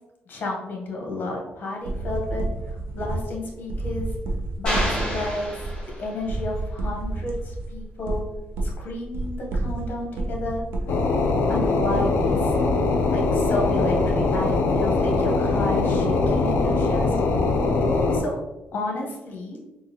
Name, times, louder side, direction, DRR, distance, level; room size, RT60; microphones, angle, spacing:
voice 1, 0.3-4.2 4.6-5.6 6.0-8.2 8.6-10.6 11.5-12.6 13.1-17.1 18.1-18.4 18.7-19.6, left 2 dB, 50° left, -1 dB, 1.0 m, -31 dB
sound 1, 1.8-11.0, right 2 dB, 70° right, 0.6 m, -30 dB
sound 2, 4.7-6.4, equal, 20° left, 1.5 m, -29 dB
sound 3, 10.9-18.2, left 3 dB, 70° left, 0.4 m, -22 dB
3.8 x 2.4 x 2.9 m, 1.0 s
cardioid pair, 120°, 4 cm